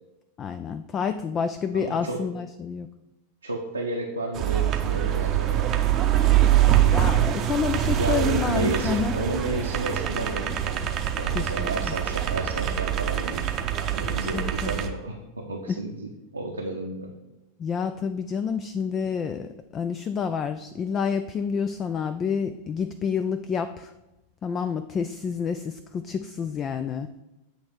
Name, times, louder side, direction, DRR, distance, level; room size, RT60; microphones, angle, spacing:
voice 1, 0.4-2.9 6.8-9.1 11.3-11.9 14.3-14.7 15.7-15.8 17.6-23.9 24.4-27.1, left 6 dB, 25° left, 10 dB, 0.3 m, -29 dB
voice 2, 1.7-2.2 3.4-5.7 8.0-10.8 11.2-13.6 13.9-17.1, right 2 dB, 80° right, -1 dB, 0.7 m, -32 dB
sound 1, 4.3-14.9, right 11 dB, 30° right, 0.7 m, -24 dB
7.9 x 3.5 x 6.1 m, 0.98 s
figure-of-eight pair, 90°, 0 cm